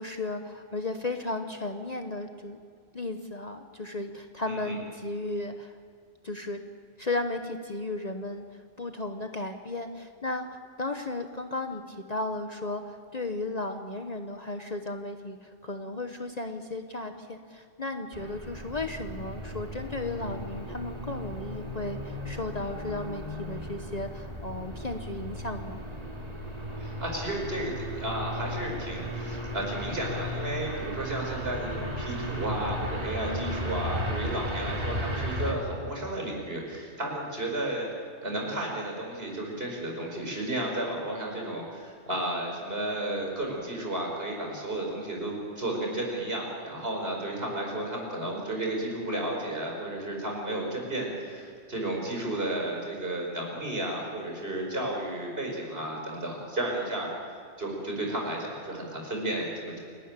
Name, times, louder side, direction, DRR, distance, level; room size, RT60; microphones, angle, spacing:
voice 1, 0.0-2.6 2.9-5.7 6.2-6.6 7.0-8.4 8.8-25.8 33.2-33.9, left 2 dB, 35° left, 6 dB, 1.1 m, -35 dB
voice 2, 4.5-4.8 26.8-37.9 38.2-57.1 57.6-59.8, right 1 dB, 55° right, 0 dB, 5.5 m, -33 dB
sound 1, 18.1-35.5, equal, 30° right, 2.6 m, -35 dB
28.5 x 13.0 x 8.9 m, 2.2 s
omnidirectional pair, 1.2 m